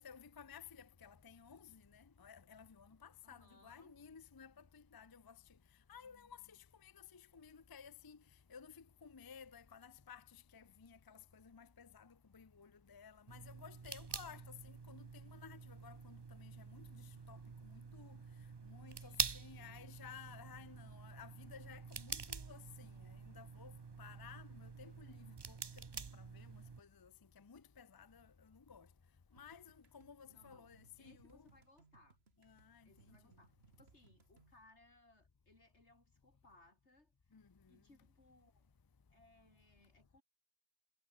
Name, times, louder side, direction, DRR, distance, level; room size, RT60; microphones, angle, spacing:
voice 1, 0.0-5.4 5.9-8.2 8.5-18.2 18.6-23.7 24.0-28.9 29.3-31.5 32.4-32.9 37.3-37.8, left 7 dB, 25° left, 0.5 m, -57 dB
voice 2, 3.2-3.9 14.2-14.4 19.0-20.1 30.3-30.7 31.0-32.2 32.8-37.4 37.7-38.7 39.1-40.2, left 2 dB, 80° left, 5.4 m, -68 dB
sound 1, 13.3-26.8, right 5 dB, 30° right, 0.5 m, -47 dB
sound 2, 29.4-34.5, right 5 dB, 65° right, 2.0 m, -69 dB
omnidirectional pair, 1.2 m